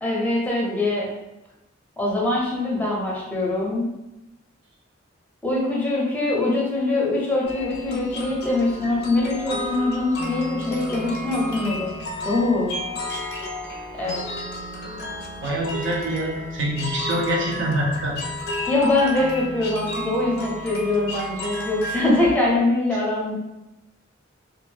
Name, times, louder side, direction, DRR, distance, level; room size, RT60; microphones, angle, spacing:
voice 1, 0.0-1.1 2.0-3.9 5.4-11.9 12.2-12.7 13.9-14.2 18.7-23.3, left 2 dB, 10° left, -4 dB, 0.6 m, -23 dB
sound 1, 7.4-22.4, left 1 dB, 55° left, 0.4 m, -32 dB
voice 2, 15.4-18.2, right 1 dB, 65° right, -3 dB, 0.6 m, -25 dB
2.3 x 2.0 x 3.2 m, 0.92 s
head